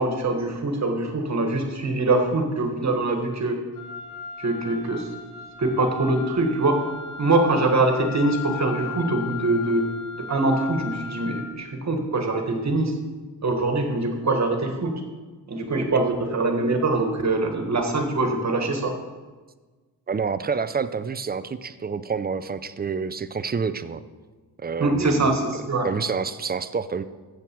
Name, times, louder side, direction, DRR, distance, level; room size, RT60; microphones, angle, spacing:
voice 1, 0.0-3.5 4.4-5.1 5.6-6.8 7.2-9.9 10.2-13.0 13.4-15.0 15.5-18.9 24.8-25.9, right 2 dB, 40° right, 4 dB, 1.6 m, -23 dB
Wind instrument woodwind instrument, 3.8-11.5, left 6 dB, 50° left, 2.3 m, -37 dB
voice 2, 20.1-24.0 24.6-25.4 25.8-27.0, right 5 dB, 25° right, 13 dB, 0.4 m, -28 dB
14.0 x 7.8 x 4.5 m, 1.3 s
wide cardioid pair, 130°, 42 cm